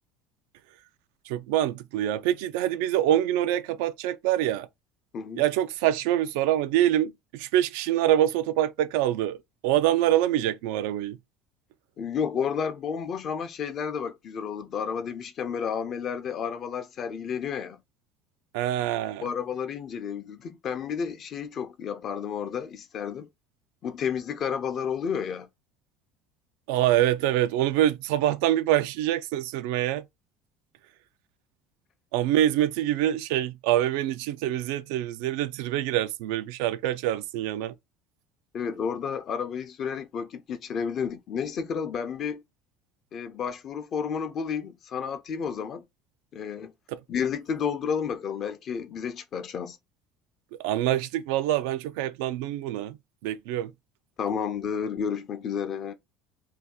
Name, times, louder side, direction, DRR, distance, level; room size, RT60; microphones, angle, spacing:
voice 1, 1.3-4.7 5.4-9.4 9.6-11.2 18.5-19.3 26.7-30.0 32.1-37.7 46.9-47.0 50.5-53.0 53.2-53.7, right 12 dB, 80° right, 0.3 m, -25 dB
voice 2, 12.0-17.8 19.2-23.3 23.8-25.5 38.5-42.4 43.1-45.8 46.3-46.7 47.1-49.8 54.2-55.9, left 7 dB, 45° left, 0.6 m, -31 dB
2.7 x 2.3 x 3.6 m
supercardioid pair, 100°, 0 cm